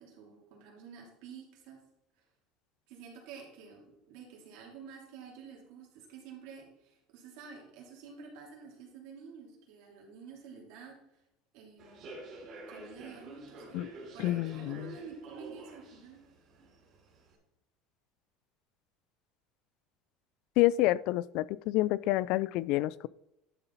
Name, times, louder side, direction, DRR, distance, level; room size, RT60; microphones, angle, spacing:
voice 1, 0.0-1.8 2.9-11.0 11.5-12.2 12.7-13.8 14.1-16.2, right 6 dB, 65° right, -1 dB, 3.3 m, -49 dB
Human voice / Subway metro underground, 11.8-17.3, right 2 dB, 35° right, 2.9 m, -49 dB
voice 2, 14.2-14.9 20.6-23.1, left 16 dB, 55° left, 20 dB, 0.3 m, -28 dB
11.0 x 6.9 x 4.1 m, 0.87 s
cardioid pair, 165°, 0 cm